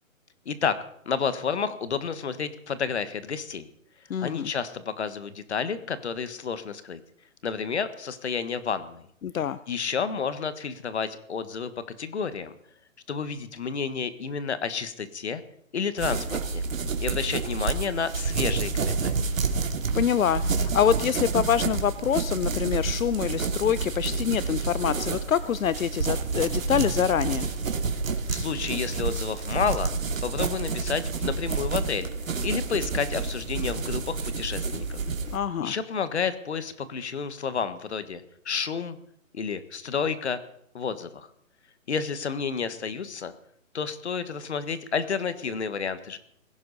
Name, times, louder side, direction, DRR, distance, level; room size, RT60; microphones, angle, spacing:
voice 1, 0.4-0.8 1.0-3.7 4.2-7.0 7.4-9.0 9.7-11.7 12.0-12.5 13.1-15.4 15.7-16.6 17.0-19.1 28.3-29.9 30.2-32.1 32.4-35.0 35.6-39.0 39.3-40.4 40.7-41.3 41.9-43.3 43.7-46.2, left 6 dB, 55° left, 12 dB, 1.5 m, -30 dB
voice 2, 4.1-4.5 9.2-9.6 19.9-27.5 35.3-35.7, left 9 dB, 75° left, 16 dB, 0.8 m, -25 dB
sound 1, 16.0-35.4, right 4 dB, 70° right, 2.4 m, -29 dB
20.0 x 16.5 x 4.1 m, 0.70 s
hypercardioid pair, 175°, 41 cm